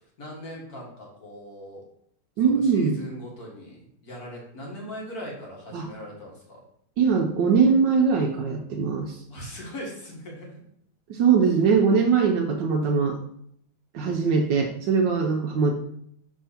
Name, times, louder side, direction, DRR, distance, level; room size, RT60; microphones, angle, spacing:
voice 1, 0.2-1.8 2.4-6.6 9.3-10.6, equal, 45° left, -2 dB, 1.9 m, -40 dB
voice 2, 2.4-3.0 5.7-5.9 7.0-9.2 11.1-13.2 13.9-15.7, right 5 dB, 70° right, 3 dB, 1.2 m, -21 dB
5.6 x 3.6 x 5.7 m, 0.69 s
omnidirectional pair, 2.3 m